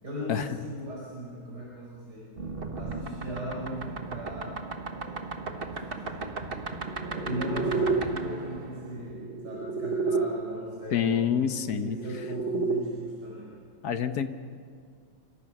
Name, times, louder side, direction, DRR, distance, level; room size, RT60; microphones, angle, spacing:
voice 1, 0.0-2.3 2.7-4.7 4.9-6.6 7.0-13.6, equal, 45° right, -5 dB, 5.3 m, -39 dB
sound 1, 2.4-10.3 11.5-12.8, right 4 dB, 30° right, 1.3 m, -32 dB
voice 2, 10.9-12.0 12.5-12.7 13.8-14.3, left 8 dB, 55° left, 9 dB, 1.2 m, -27 dB
26.0 x 25.5 x 6.0 m, 2.1 s
omnidirectional pair, 2.4 m